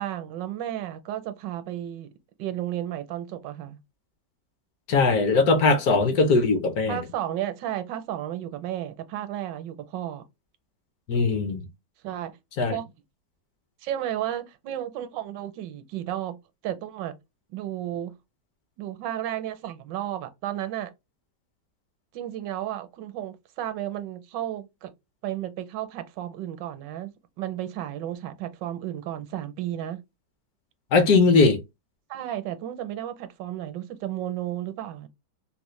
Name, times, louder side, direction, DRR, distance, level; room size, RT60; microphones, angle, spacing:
voice 1, 0.0-2.1 2.4-3.8 6.9-10.2 12.0-12.3 12.7-12.9 13.8-16.4 16.6-17.2 17.5-18.2 18.8-20.9 22.1-24.9 25.2-27.1 27.4-30.0 32.1-35.1, right 12 dB, 80° right, 1.2 m, -33 dB
voice 2, 4.9-7.0 11.1-11.7 12.6-12.8 30.9-31.6, left 3 dB, 65° left, 1.1 m, -20 dB
4.0 x 2.1 x 3.0 m
omnidirectional pair, 1.9 m